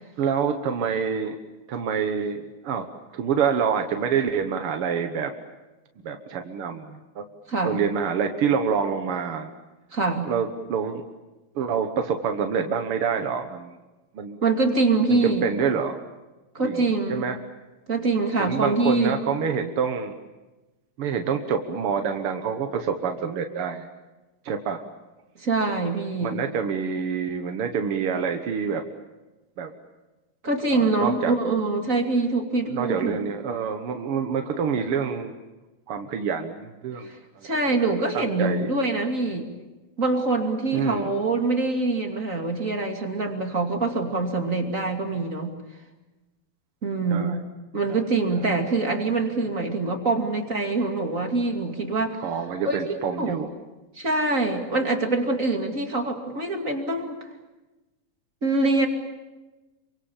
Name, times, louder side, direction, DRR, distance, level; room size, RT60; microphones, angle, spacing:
voice 1, 0.2-1.4 1.7-2.9 3.1-5.3 6.0-7.2 7.6-9.5 10.2-11.0 11.5-13.8 14.1-14.4 15.2-16.0 16.6-17.4 18.4-20.1 21.0-23.9 24.4-24.8 26.2-28.8 29.6-29.7 30.7-31.3 32.7-35.4 35.9-37.1 37.3-38.7 40.7-41.1 47.1-47.4 47.9-48.0 48.3-48.5 52.2-53.5, right 6 dB, 60° right, 5 dB, 1.5 m, -27 dB
voice 2, 7.5-7.8 9.9-10.3 14.4-15.5 16.5-17.2 17.9-19.2 25.4-26.4 30.4-33.2 37.4-39.5 40.0-45.5 46.8-47.4 47.7-52.2 52.6-53.4 54.0-57.2 58.4-58.9, right 3 dB, 25° right, 3 dB, 2.5 m, -24 dB
28.5 x 24.5 x 7.3 m, 1.1 s
omnidirectional pair, 4.1 m